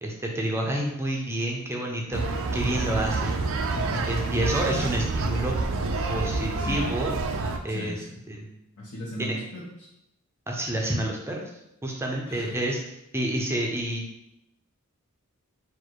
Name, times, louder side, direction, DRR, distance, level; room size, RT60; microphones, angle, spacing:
voice 1, 0.0-2.2 2.5-3.5 4.1-5.6 6.1-7.1 7.6-8.6 9.2-9.4 10.5-11.5 11.8-12.8 13.1-14.0, right 1 dB, 10° right, -1 dB, 0.6 m, -29 dB
sound 1, 2.1-7.6, right 3 dB, 60° right, 0.4 m, -28 dB
voice 2, 3.8-4.1 4.4-4.9 6.6-6.9 7.7-8.2 8.8-9.9 12.3-12.5, left 1 dB, 70° left, -10 dB, 1.3 m, -36 dB
4.4 x 2.6 x 4.6 m, 0.83 s
head